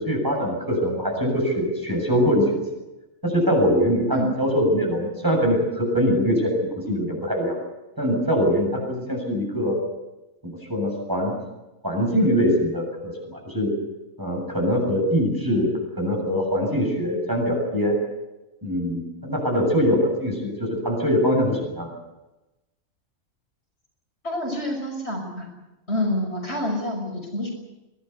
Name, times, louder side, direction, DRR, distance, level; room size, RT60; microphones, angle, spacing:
voice 1, 0.0-2.6 3.2-7.6 8.0-9.8 10.4-11.3 11.8-13.7 14.2-18.0 18.6-21.9, equal, 15° right, 0 dB, 7.5 m, -23 dB
voice 2, 24.2-25.5 25.9-27.5, left 1 dB, 50° left, 1 dB, 6.1 m, -27 dB
24.0 x 18.0 x 8.2 m, 1.0 s
omnidirectional pair, 1.4 m